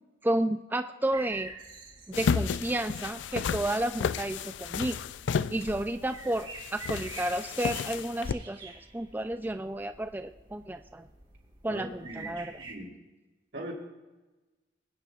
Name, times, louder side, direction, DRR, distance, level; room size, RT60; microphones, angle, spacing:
voice 1, 0.2-1.5 2.1-5.0 5.5-11.1 11.6-12.5, right 1 dB, 10° right, 8 dB, 0.3 m, -31 dB
sound 1, 1.1-12.7, right 3 dB, 25° right, 2.2 m, -48 dB
sound 2, 2.1-8.3, left 6 dB, 75° left, 0.3 m, -32 dB
voice 2, 11.7-12.9 13.5-13.7, right 1 dB, 65° right, -2 dB, 3.3 m, -41 dB
22.0 x 9.6 x 2.4 m, 1.2 s
head